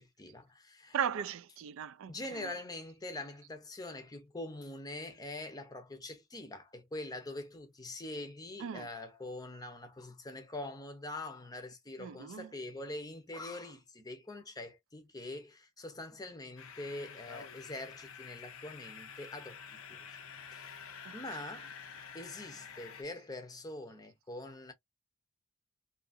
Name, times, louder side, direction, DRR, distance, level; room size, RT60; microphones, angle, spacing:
voice 1, 0.0-1.0 2.1-20.0 20.5-21.7 22.1-24.7, left 2 dB, 20° left, 0.6 m, -44 dB
voice 2, 0.9-2.5 8.6-8.9 12.0-12.5 21.0-21.2, right 8 dB, 70° right, 0.4 m, -37 dB
sound 1, 16.6-23.0, left 6 dB, 70° left, 0.6 m, -49 dB
2.7 x 2.4 x 2.5 m
head